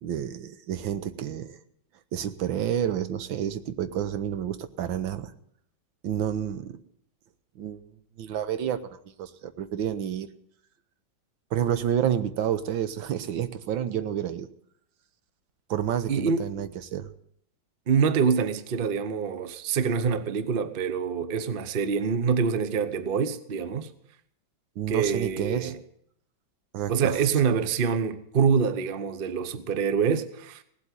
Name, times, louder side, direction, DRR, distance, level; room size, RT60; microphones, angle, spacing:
voice 1, 0.0-1.6 2.1-5.3 6.0-6.8 7.6-7.8 8.2-8.8 9.2-10.3 11.5-14.5 15.7-17.1 24.8-25.7 26.7-27.3 27.5-27.6, right 9 dB, 80° right, 1.6 m, -29 dB
voice 2, 16.1-16.4 17.9-23.9 24.9-25.8 26.9-30.6, right 6 dB, 45° right, 0.7 m, -25 dB
17.5 x 8.1 x 9.1 m
omnidirectional pair, 2.1 m